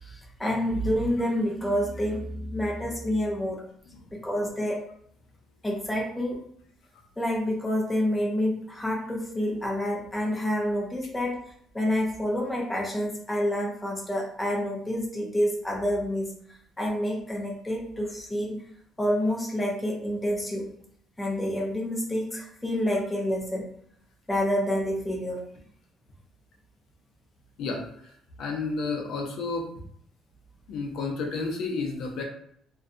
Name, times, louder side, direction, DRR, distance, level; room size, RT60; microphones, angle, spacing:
voice 1, 0.0-3.6 4.1-4.8 5.6-6.4 7.2-11.4 11.7-18.6 19.0-20.7 21.2-23.7 24.3-25.4, equal, 5° left, -3 dB, 0.4 m, -28 dB
voice 2, 27.6-28.1 28.4-29.7 30.7-32.2, left 3 dB, 60° left, 1 dB, 0.5 m, -31 dB
2.6 x 2.2 x 2.4 m, 0.66 s
cardioid pair, 170°, 0 cm